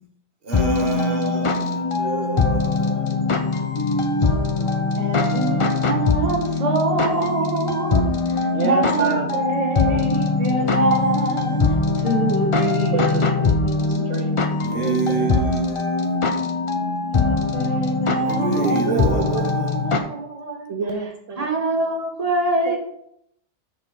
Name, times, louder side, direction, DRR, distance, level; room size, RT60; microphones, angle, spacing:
voice 1, 0.4-3.3 14.6-16.2 18.2-19.9, right 4 dB, 50° right, 1.4 m, -28 dB
sound 1, 0.5-20.0, left 3 dB, 35° left, 0.6 m, -22 dB
voice 2, 5.0-8.1 8.6-11.6 12.0-14.2 17.1-20.7 21.4-22.8, right 2 dB, 30° right, 1.5 m, -25 dB
voice 3, 8.5-9.3 12.9-13.5 13.7-15.4 18.5-19.5 20.7-21.5 22.7-22.8, right 5 dB, 70° right, 1.1 m, -29 dB
7.5 x 6.4 x 3.9 m
omnidirectional pair, 1.3 m